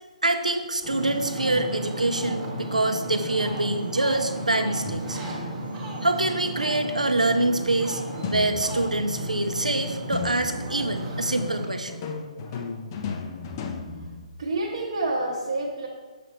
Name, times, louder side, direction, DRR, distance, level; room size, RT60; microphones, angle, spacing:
voice 1, 0.2-5.2 6.0-8.0 8.3-12.0, right 2 dB, 75° right, 7 dB, 0.6 m, -25 dB
Ocean, 0.8-11.7, right 1 dB, 20° right, 1.1 m, -33 dB
sound 1, 4.8-5.5 8.2-9.1 10.1-10.8 11.9-14.8, left 5 dB, 30° left, 0.5 m, -35 dB
voice 2, 14.4-15.9, right 2 dB, 45° right, -5 dB, 0.9 m, -28 dB
6.8 x 5.8 x 3.1 m, 1.3 s
figure-of-eight pair, 135°, 4 cm